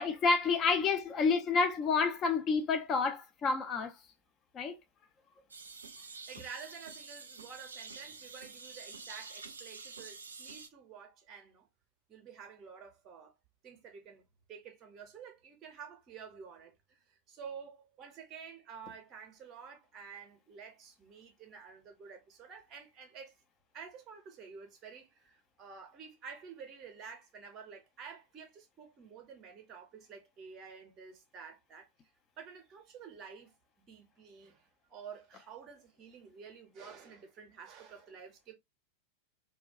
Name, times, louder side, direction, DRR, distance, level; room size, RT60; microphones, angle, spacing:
voice 1, 0.0-4.0 4.5-4.8, left 4 dB, 30° left, 0.5 m, -29 dB
sound 1, 5.5-10.7, right 4 dB, 75° right, 0.3 m, -48 dB
voice 2, 6.3-11.7 12.1-13.4 13.6-14.2 14.5-23.3 23.7-31.9 32.4-38.5, right 6 dB, 30° right, 0.7 m, -50 dB
2.2 x 2.2 x 2.5 m
figure-of-eight pair, 90°, 0 cm